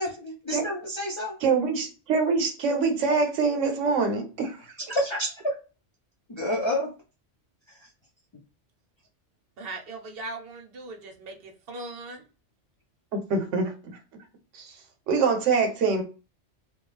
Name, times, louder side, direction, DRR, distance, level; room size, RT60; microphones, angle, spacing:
voice 1, 0.0-1.4 4.9-5.5 6.3-6.9, left 1 dB, 35° left, 0.5 m, -29 dB
voice 2, 1.4-4.6 13.1-13.7 14.5-14.7 15.1-16.0, right 4 dB, 85° right, 1.0 m, -24 dB
voice 3, 9.6-12.3, right 2 dB, 60° right, 0.8 m, -39 dB
2.3 x 2.3 x 3.1 m
omnidirectional pair, 1.2 m